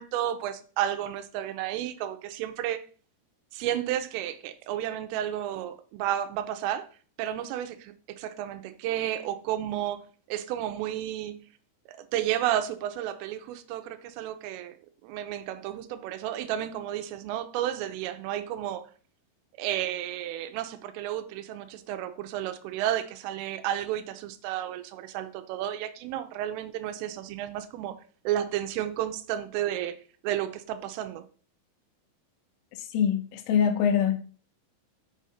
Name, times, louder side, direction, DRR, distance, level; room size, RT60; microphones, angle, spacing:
voice 1, 0.0-2.8 3.5-6.9 7.2-11.5 11.9-14.8 15.0-18.9 19.6-28.0 28.2-30.0 30.2-31.2, right 11 dB, 85° right, 3.3 m, -32 dB
voice 2, 32.8-34.2, left 8 dB, 85° left, 3.6 m, -24 dB
7.1 x 6.4 x 5.6 m
omnidirectional pair, 5.8 m